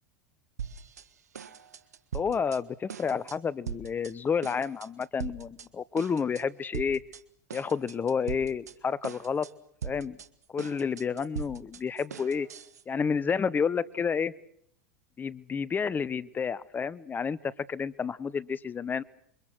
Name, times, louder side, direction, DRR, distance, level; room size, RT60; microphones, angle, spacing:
sound 1, 0.6-1.1 1.3-2.6 2.9-3.4 3.7-4.1 4.4-5.7 6.0-6.4 6.7-7.2 7.5-8.7 9.0-9.5 9.8-12.8, right 7 dB, 90° right, 1.6 m, -40 dB
voice 1, 2.1-7.0 7.5-9.5 9.8-10.2 10.5-12.5 12.9-14.3 15.2-17.4 17.7-19.0, left 6 dB, 20° left, 21 dB, 1.0 m, -30 dB
28.0 x 23.5 x 6.2 m, 0.68 s
hypercardioid pair, 100°, 8 cm